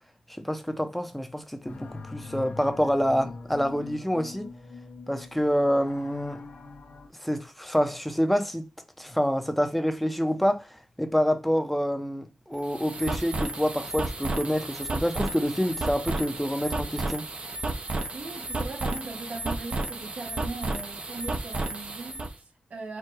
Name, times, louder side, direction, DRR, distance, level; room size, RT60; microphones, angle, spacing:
voice 1, 0.4-4.5 5.1-6.4 7.2-8.7 9.0-10.7 11.0-17.2, equal, 5° left, 0.8 m, -27 dB
sound 1, 1.6-7.1, left 4 dB, 80° left, 1.1 m, -42 dB
sound 2, 12.5-22.3, right 2 dB, 50° right, 0.9 m, -32 dB
voice 2, 18.1-23.0, right 3 dB, 70° right, 1.2 m, -39 dB
4.7 x 2.3 x 4.6 m
cardioid pair, 75°, 3 cm